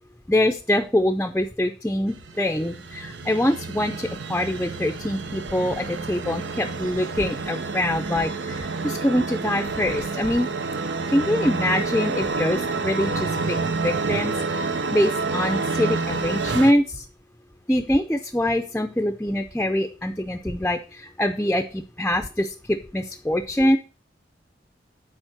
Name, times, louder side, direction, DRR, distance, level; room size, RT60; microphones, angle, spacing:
voice 1, 0.3-10.5 11.1-13.6 13.8-17.0 17.7-23.8, left 1 dB, 10° left, 6 dB, 0.5 m, -24 dB
sound 1, 2.1-16.7, right 3 dB, 90° right, 0.8 m, -29 dB
9.1 x 4.4 x 5.9 m, 0.34 s
head